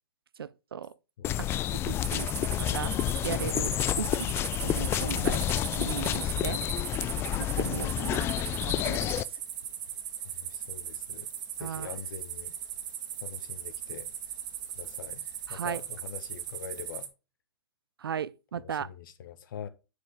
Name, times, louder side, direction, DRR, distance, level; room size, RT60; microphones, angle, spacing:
voice 1, 0.4-0.9 1.4-3.0 3.2-4.3 4.6-5.4 5.7-6.6 7.6-9.1 11.6-11.9 15.5-15.8 18.0-18.9, right 8 dB, 80° right, 0.5 m, -37 dB
voice 2, 1.2-2.6 5.1-5.5 10.3-11.3 11.6-12.5 13.2-14.1 14.7-15.2 15.5-17.1 18.6-19.7, left 8 dB, 60° left, 1.3 m, -44 dB
sound 1, 1.2-9.2, left 12 dB, 20° left, 0.3 m, -29 dB
sound 2, 2.0-17.1, right 9 dB, 50° right, 1.6 m, -38 dB
9.4 x 5.0 x 3.6 m
hypercardioid pair, 125°, 12 cm